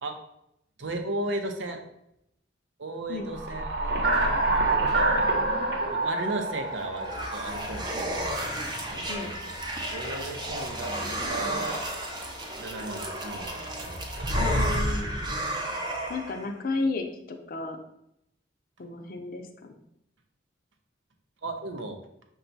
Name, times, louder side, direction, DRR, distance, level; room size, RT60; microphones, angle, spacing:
voice 1, 0.8-1.8 2.8-4.7 4.9-5.3 5.9-8.4 8.9-9.5 9.9-10.9 11.3-11.8 12.4-14.5 21.4-22.0, right 2 dB, 85° right, 4 dB, 0.7 m, -36 dB
sound 1, 3.3-7.9, right 2 dB, 55° right, 0.9 m, -26 dB
sound 2, 6.5-16.5, equal, 25° right, 0.5 m, -32 dB
voice 2, 14.3-15.2 16.1-17.8 18.8-19.5, left 3 dB, 50° left, 4 dB, 0.5 m, -32 dB
5.7 x 2.3 x 3.9 m, 0.79 s
head